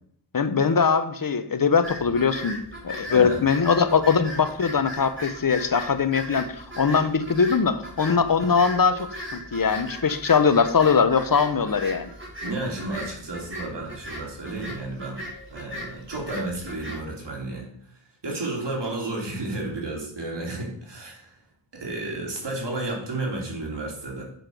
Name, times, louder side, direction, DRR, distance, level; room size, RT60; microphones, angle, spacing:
voice 1, 0.3-2.6 2.8-12.1, left 6 dB, 45° left, 11 dB, 0.9 m, -21 dB
sound 1, 1.8-17.0, equal, 25° right, 3.4 m, -38 dB
voice 2, 3.1-3.4 12.4-15.2 15.5-17.7 18.2-21.3 21.7-24.2, right 2 dB, 65° right, -1 dB, 3.0 m, -32 dB
7.9 x 6.4 x 5.2 m, 0.67 s
cardioid pair, 60°, 46 cm